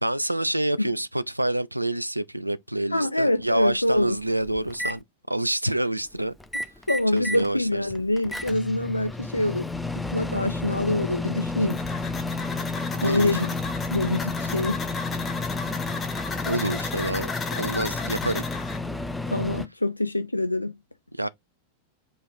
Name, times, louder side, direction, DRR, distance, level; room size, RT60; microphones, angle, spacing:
voice 1, 0.0-6.3 7.1-7.9 13.0-13.3 16.4-17.3 17.6-18.4 21.2-21.3, right 1 dB, 85° right, 0.3 m, -27 dB
voice 2, 2.9-4.2 6.9-9.7 9.9-11.8 13.0-13.5 13.9-14.9 19.3-20.7, left 1 dB, 85° left, 0.3 m, -25 dB
Microwave oven, 3.4-3.5 4.0-5.0 6.4-7.5 7.9-19.7, left 3 dB, 5° left, 0.4 m, -31 dB
sound 1, 11.7-18.8, left 4 dB, 20° left, 1.0 m, -35 dB
5.1 x 2.4 x 3.9 m
figure-of-eight pair, 90°, 0 cm